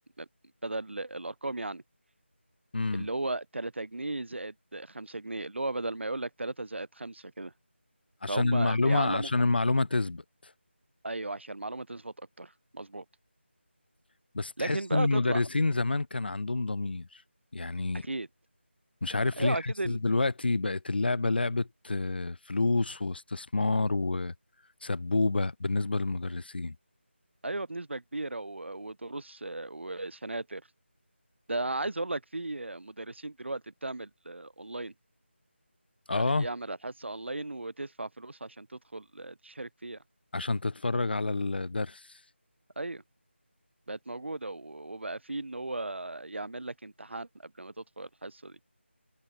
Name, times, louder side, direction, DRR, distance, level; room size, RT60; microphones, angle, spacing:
voice 1, 0.6-1.8 2.9-7.5 8.3-9.3 11.0-13.0 14.6-15.4 18.0-18.3 19.4-20.0 27.4-30.6 31.5-34.9 36.1-40.0 42.8-43.0 43.9-48.6, right 2 dB, 70° right, 4.1 m, -36 dB
voice 2, 2.7-3.1 8.2-10.5 14.3-17.2 17.5-18.1 19.0-24.3 24.8-26.8 36.1-36.5 40.3-42.2, left 3 dB, 55° left, 0.7 m, -28 dB
figure-of-eight pair, 175°, 7 cm